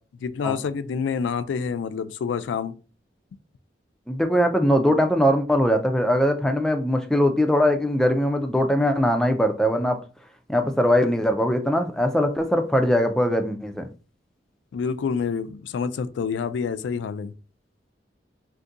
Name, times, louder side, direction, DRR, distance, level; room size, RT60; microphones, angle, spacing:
voice 1, 0.2-2.7 14.7-17.3, left 6 dB, 90° left, 0.3 m, -27 dB
voice 2, 4.1-10.0 10.5-13.9, equal, 5° left, 0.3 m, -21 dB
2.6 x 2.6 x 3.6 m
head